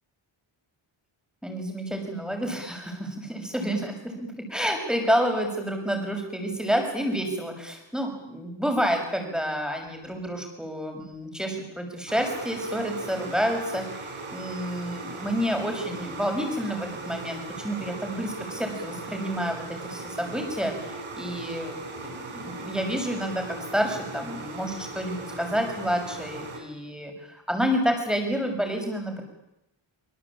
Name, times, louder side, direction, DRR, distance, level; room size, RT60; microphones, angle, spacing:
voice 1, 1.4-29.2, equal, ahead, 3 dB, 6.8 m, -29 dB
sound 1, 12.1-26.6, right 3 dB, 75° right, 6.2 m, -38 dB
26.5 x 25.0 x 8.9 m, 0.87 s
wide cardioid pair, 160°, 49 cm